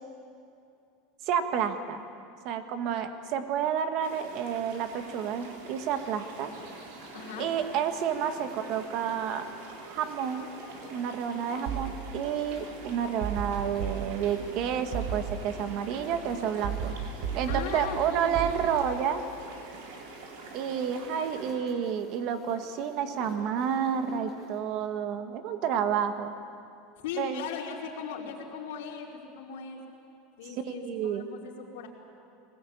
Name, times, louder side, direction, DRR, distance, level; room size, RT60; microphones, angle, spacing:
voice 1, 1.2-2.0 2.4-6.5 7.4-9.5 9.9-10.5 10.9-16.9 17.3-19.2 20.5-26.3 27.2-27.4 30.7-31.3, right 8 dB, 45° right, 8 dB, 1.5 m, -30 dB
sound 1, 4.0-21.5, right 3 dB, 80° right, 4.0 m, -46 dB
sound 2, 6.3-24.6, equal, 30° right, 6.8 m, -50 dB
voice 2, 7.1-7.5 17.5-18.4 27.0-29.8 30.4-31.9, left 6 dB, 85° left, -2 dB, 4.6 m, -38 dB
sound 3, 11.7-12.6 13.2-14.6 14.9-16.0 16.6-18.5, right 7 dB, 60° right, 3.5 m, -35 dB
21.5 x 20.0 x 8.7 m, 2.6 s
supercardioid pair, 165°, 0 cm